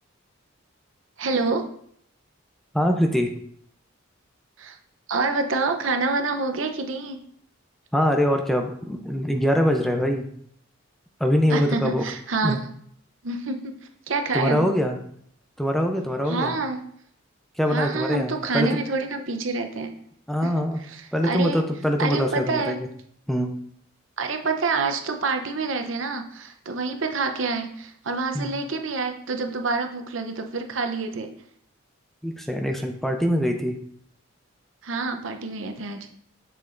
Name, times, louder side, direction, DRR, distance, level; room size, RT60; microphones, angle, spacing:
voice 1, 1.2-1.7 4.6-4.8 5.1-7.2 11.5-12.7 13.2-13.7 14.1-14.7 16.3-16.8 17.7-19.9 20.4-20.5 20.8-21.6 22.0-22.8 24.2-31.3 34.8-36.1, right 3 dB, 70° right, 6 dB, 0.8 m, -27 dB
voice 2, 2.7-3.3 7.9-10.3 11.2-12.0 12.4-12.6 14.3-15.0 15.6-16.5 17.6-18.7 20.3-20.8 21.1-22.9 23.3-23.5 28.3-28.5 32.2-33.8, equal, ahead, 3 dB, 0.5 m, -23 dB
6.7 x 6.7 x 2.6 m, 0.66 s
head